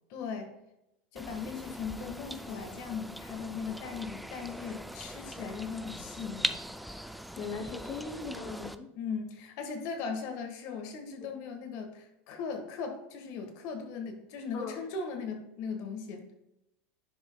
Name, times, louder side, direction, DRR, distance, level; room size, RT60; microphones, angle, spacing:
voice 1, 0.1-0.5 1.1-6.5 8.9-16.3, left 5 dB, 60° left, 5 dB, 1.4 m, -38 dB
sound 1, 1.2-8.8, equal, ahead, 0.3 m, -40 dB
voice 2, 7.4-8.9 11.2-11.3 14.5-14.8, left 4 dB, 40° left, 7 dB, 0.8 m, -39 dB
10.0 x 5.2 x 2.2 m, 0.90 s
supercardioid pair, 120°, 7 cm